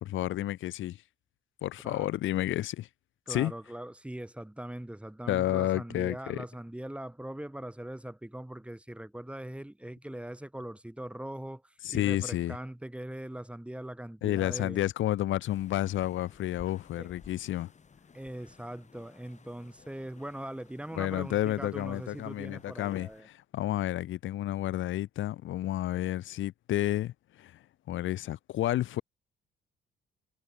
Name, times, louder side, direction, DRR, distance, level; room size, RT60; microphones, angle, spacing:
voice 1, 0.0-1.0 1.6-2.9 3.3-3.5 5.3-6.4 11.8-12.5 14.2-17.7 21.0-27.6 27.9-29.0, left 14 dB, 75° left, 1.1 m, -31 dB
voice 2, 3.3-14.8 16.9-17.1 18.1-23.3 23.7-23.8, right 1 dB, 5° right, 1.9 m, -41 dB
sound 1, 15.5-23.2, left 5 dB, 35° left, 6.0 m, -56 dB
cardioid pair, 90°, 20 cm